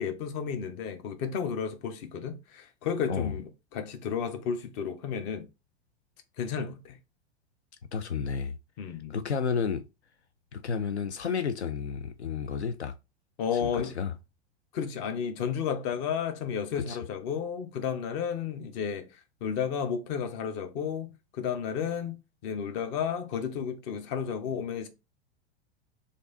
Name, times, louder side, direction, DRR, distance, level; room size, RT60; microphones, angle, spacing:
voice 1, 0.0-5.4 6.4-7.0 8.8-9.2 13.4-13.9 14.7-19.1 19.4-22.1 22.4-24.9, left 7 dB, 40° left, 0.8 m, -32 dB
voice 2, 7.9-8.5 9.1-9.8 10.5-12.9 13.5-14.1 16.8-17.0, left 6 dB, 90° left, 0.5 m, -31 dB
3.3 x 2.5 x 4.0 m
figure-of-eight pair, 95°, 33 cm